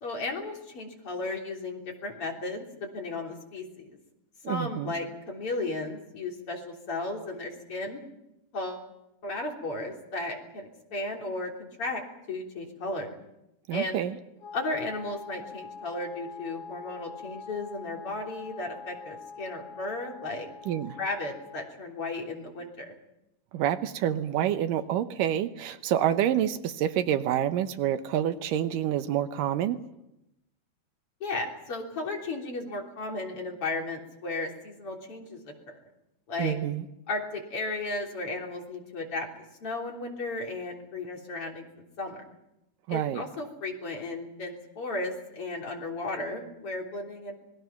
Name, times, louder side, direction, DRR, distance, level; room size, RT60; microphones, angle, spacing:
voice 1, 0.0-3.9 4.5-8.0 8.5-8.9 9.2-12.0 12.3-13.2 13.7-14.0 14.5-20.5 21.0-22.9 31.2-35.8 36.3-36.6 37.1-39.3 39.6-42.2 42.9-47.4, left 2 dB, 45° left, 0 dB, 4.2 m, -35 dB
voice 2, 4.4-4.9 13.7-14.2 20.7-21.0 23.5-29.8 36.4-36.9 42.9-43.2, right 10 dB, 85° right, 10 dB, 2.6 m, -27 dB
Wind instrument woodwind instrument, 14.4-21.8, left 5 dB, 70° left, 2.6 m, -44 dB
27.0 x 21.0 x 5.8 m, 0.89 s
omnidirectional pair, 3.8 m